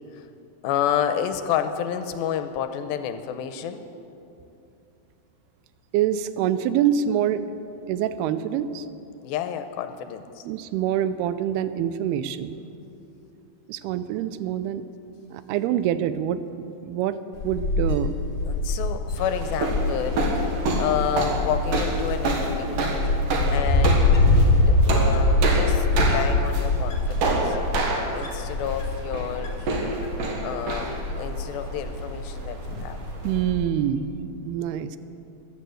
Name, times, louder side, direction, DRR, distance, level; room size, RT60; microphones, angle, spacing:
voice 1, 0.6-3.8 9.2-10.5 18.5-20.3 20.8-22.8 23.5-27.6 28.1-29.8 30.4-33.0, left 9 dB, 80° left, 9 dB, 2.4 m, -30 dB
voice 2, 5.9-7.5 7.9-8.9 10.5-12.5 13.7-14.9 15.3-17.2 17.4-18.2 33.2-35.0, right 10 dB, 90° right, 13 dB, 2.6 m, -25 dB
Wind, 17.3-33.6, left 2 dB, 35° left, 1.7 m, -24 dB
sound 1, 19.2-33.4, right 2 dB, 65° right, 2.9 m, -29 dB
14.0 x 11.5 x 7.7 m, 2.8 s
omnidirectional pair, 4.5 m